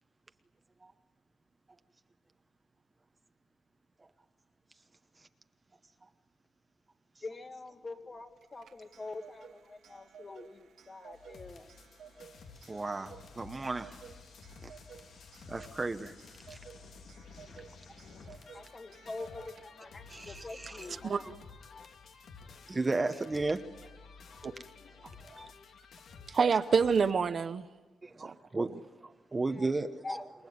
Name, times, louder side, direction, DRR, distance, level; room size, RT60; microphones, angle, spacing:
voice 1, 7.2-11.7 18.2-21.2 29.5-29.7 30.0-30.3, left 3 dB, 30° left, 2.0 m, -45 dB
Clock, 8.4-20.0, right 6 dB, 85° right, 2.0 m, -55 dB
sound 1, 11.1-27.1, left 5 dB, 70° left, 1.8 m, -53 dB
voice 2, 12.7-14.0 14.6-14.7 15.5-16.1 16.5-16.6 20.1-20.9 22.7-23.6 26.4-26.5 28.0-29.9, right 3 dB, 20° right, 1.0 m, -34 dB
voice 3, 26.3-27.7 28.2-28.8, right 5 dB, 45° right, 0.9 m, -28 dB
28.0 x 22.0 x 9.6 m
wide cardioid pair, 145°, 0 cm